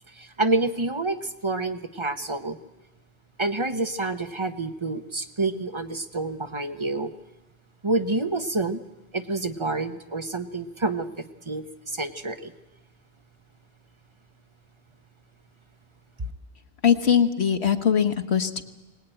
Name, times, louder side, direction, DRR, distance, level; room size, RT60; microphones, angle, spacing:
voice 1, 0.1-2.6 3.4-7.1 7.8-8.8 9.1-12.5, right 2 dB, 30° right, 10 dB, 0.8 m, -28 dB
voice 2, 16.8-18.6, left 8 dB, 65° left, 7 dB, 1.5 m, -21 dB
23.5 x 19.5 x 9.0 m, 1.1 s
omnidirectional pair, 1.2 m